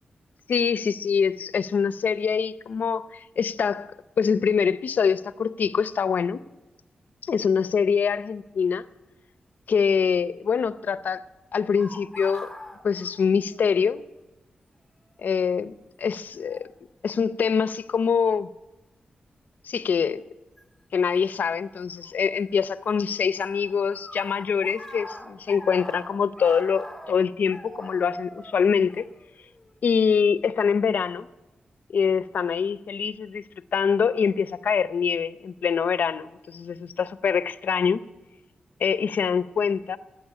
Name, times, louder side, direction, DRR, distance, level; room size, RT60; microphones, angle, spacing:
voice 1, 0.5-3.9 4.2-6.4 7.2-8.8 9.7-11.2 11.5-12.5 12.8-14.0 15.2-15.7 16.0-16.7 17.0-18.5 19.6-20.2 20.9-29.1 29.8-31.3 31.9-33.4 33.7-38.0 38.8-40.0, left 6 dB, 75° left, 0.6 m, -24 dB
sound 1, 11.8-13.8 14.1-14.2 15.2-15.5 16.5-16.7 17.4-17.9 20.6-20.7 22.0-22.9 23.1-29.7, left 1 dB, 5° right, 1.5 m, -42 dB
14.5 x 9.2 x 9.8 m
wide cardioid pair, 110°, 3 cm